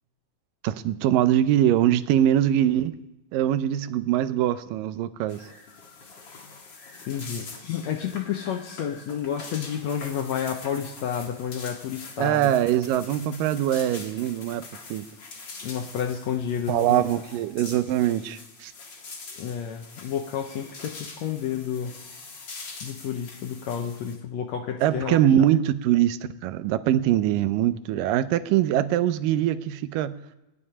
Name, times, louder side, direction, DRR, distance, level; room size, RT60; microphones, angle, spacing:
voice 1, 0.6-3.0 3.3-5.4 12.2-14.6 14.9-15.1 16.7-18.7 24.8-30.2, right 11 dB, 85° right, 12 dB, 2.3 m, -23 dB
sound 1, 5.3-24.2, left 4 dB, 40° left, 2.0 m, -44 dB
voice 2, 7.1-12.5 15.6-17.0 19.4-22.0 22.8-25.2, left 8 dB, 70° left, 5 dB, 1.8 m, -30 dB
19.0 x 7.3 x 9.7 m, 1.0 s
omnidirectional pair, 3.9 m